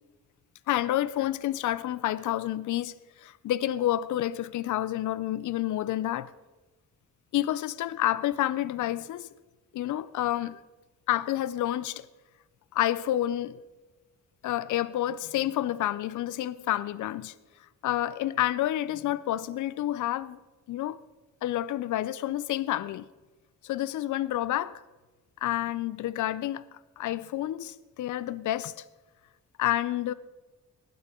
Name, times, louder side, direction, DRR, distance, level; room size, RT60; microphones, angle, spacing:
voice 1, 0.7-6.3 7.3-9.3 9.7-10.6 11.1-12.1 12.7-13.6 14.4-17.3 17.8-20.4 20.7-21.0 21.4-23.1 23.6-24.8 25.4-28.8 29.6-30.1, left 13 dB, 70° left, 0.5 m, -29 dB
19.0 x 9.3 x 3.7 m
wide cardioid pair, 140°, 31 cm